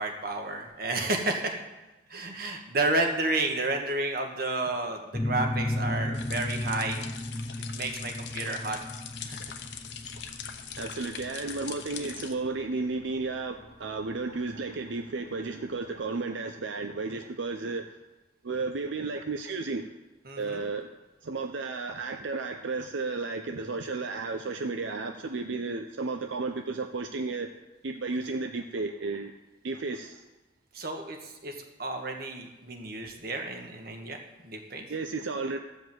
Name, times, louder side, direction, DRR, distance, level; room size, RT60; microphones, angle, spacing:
voice 1, 0.0-1.5 2.1-7.0 7.7-8.8 9.3-9.4 20.3-20.6 30.7-31.5 31.8-34.2 34.4-34.8, right 2 dB, 50° right, 3 dB, 1.5 m, -31 dB
sound 1, 5.1-14.5, left 1 dB, 15° left, 0.3 m, -35 dB
sound 2, 6.1-12.3, left 7 dB, 70° left, 1.0 m, -42 dB
voice 2, 10.8-18.0 18.4-19.8 20.4-20.9 21.2-27.5 27.8-29.3 29.6-30.2 34.9-35.6, right 3 dB, 80° right, 6 dB, 0.6 m, -33 dB
13.5 x 5.3 x 7.7 m, 1.1 s
head